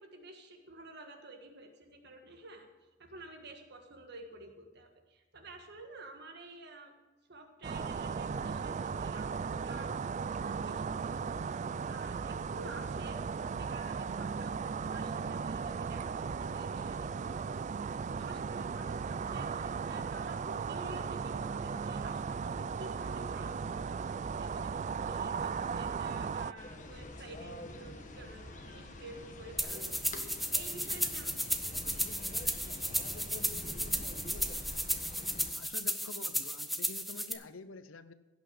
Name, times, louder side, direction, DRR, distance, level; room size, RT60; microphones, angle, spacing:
voice 1, 0.0-2.7 3.0-6.9 7.3-10.3 10.6-11.4 11.8-30.3 30.5-32.0, right 2 dB, 55° right, 4 dB, 1.6 m, -51 dB
sound 1, 7.6-26.5, right 5 dB, 35° right, 0.3 m, -36 dB
sound 2, 26.6-35.5, left 1 dB, 40° left, 1.4 m, -46 dB
sound 3, 29.6-37.3, equal, ahead, 0.7 m, -34 dB
voice 2, 35.5-38.1, left 3 dB, 85° left, 12 dB, 0.8 m, -48 dB
16.5 x 6.2 x 7.8 m, 1.1 s
head